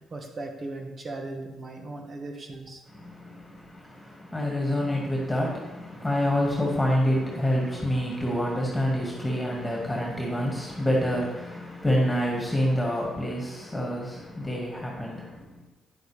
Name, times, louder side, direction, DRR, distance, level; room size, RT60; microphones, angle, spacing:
voice 1, 0.0-2.8, right 2 dB, 45° right, 3 dB, 1.5 m, -38 dB
voice 2, 2.9-15.6, equal, 10° left, -2 dB, 2.1 m, -27 dB
9.9 x 7.9 x 3.5 m, 1.0 s
cardioid pair, 90°, 0 cm